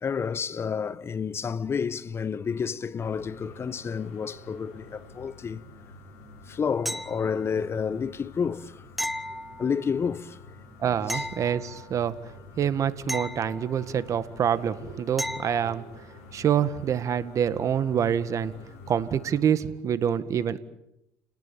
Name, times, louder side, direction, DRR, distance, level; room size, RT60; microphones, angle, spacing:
voice 1, 0.0-5.6 6.5-8.8 9.6-10.4 11.1-11.3, left 6 dB, 40° left, 1.3 m, -30 dB
sound 1, 3.0-19.4, left 3 dB, 85° left, 7.9 m, -48 dB
sound 2, 6.9-7.6 9.0-10.1 11.1-12.1 13.1-14.1 15.2-15.8 18.6-18.7, equal, ahead, 1.1 m, -35 dB
voice 2, 10.8-12.2 12.6-15.8 16.3-18.5 18.9-20.6, right 8 dB, 50° right, 1.9 m, -26 dB
29.5 x 19.0 x 8.9 m
supercardioid pair, 70°, 7 cm